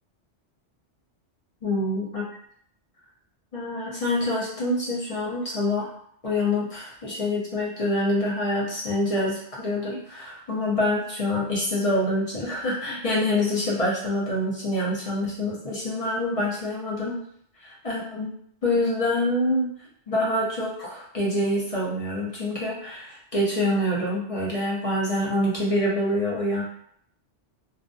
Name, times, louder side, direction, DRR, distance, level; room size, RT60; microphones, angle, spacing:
voice 1, 1.6-2.2 3.5-5.9 6.2-17.2 17.6-18.3 18.6-19.7 20.1-26.6, left 1 dB, 35° left, -6 dB, 0.7 m, -26 dB
2.5 x 2.1 x 2.6 m, 0.67 s
omnidirectional pair, 1.2 m